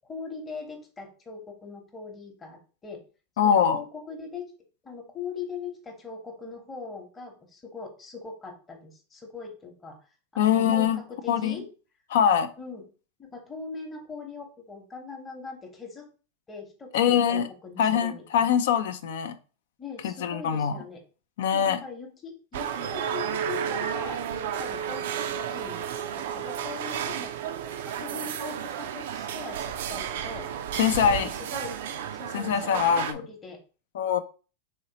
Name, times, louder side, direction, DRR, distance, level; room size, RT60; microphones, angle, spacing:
voice 1, 0.0-3.0 3.4-4.5 4.8-10.0 10.3-11.7 12.6-12.8 13.2-16.1 16.5-18.5 19.8-21.0 21.5-25.1 25.5-25.9 26.2-27.3 27.8-30.5 31.0-31.8 32.2-33.6, left 4 dB, 20° left, 0.9 m, -41 dB
voice 2, 3.4-3.8 10.4-11.0 11.3-11.6 12.1-12.5 16.9-17.5 17.8-19.4 20.0-20.8 21.4-21.8 30.8-31.3 32.3-33.2 33.9-34.2, left 8 dB, 70° left, 0.3 m, -23 dB
sound 1, 22.5-33.1, right 8 dB, 70° right, 0.3 m, -32 dB
3.1 x 2.9 x 2.8 m
hypercardioid pair, 100°, 0 cm